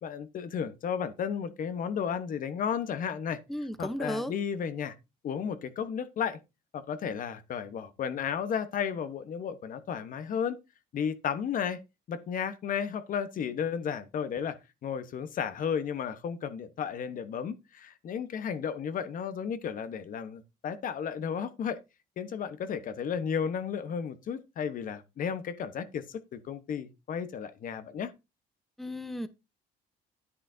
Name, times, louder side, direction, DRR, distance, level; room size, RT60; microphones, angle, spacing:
voice 1, 0.0-3.4 3.8-4.9 5.2-6.4 6.7-10.6 10.9-11.8 12.1-21.8 22.2-28.1, left 7 dB, 55° left, 1.1 m, -33 dB
voice 2, 3.5-4.3 28.8-29.3, equal, ahead, 0.8 m, -34 dB
10.0 x 9.8 x 2.7 m
cardioid pair, 110°, 17 cm